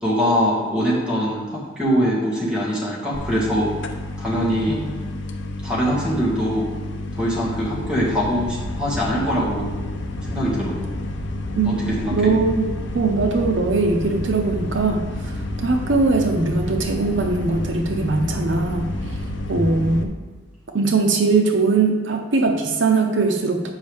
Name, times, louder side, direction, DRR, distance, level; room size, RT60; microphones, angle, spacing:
voice 1, 0.0-3.7 4.2-5.2 5.6-6.7 7.1-9.7 10.3-10.8 11.7-12.3, equal, 5° right, -6 dB, 1.8 m, -23 dB
sound 1, 3.1-20.0, left 1 dB, 70° left, 0.6 m, -30 dB
voice 2, 11.5-12.7 12.9-15.3 15.6-18.9 19.5-20.1 20.7-23.7, right 3 dB, 75° right, 3 dB, 0.7 m, -20 dB
8.0 x 5.3 x 3.5 m, 1.3 s
head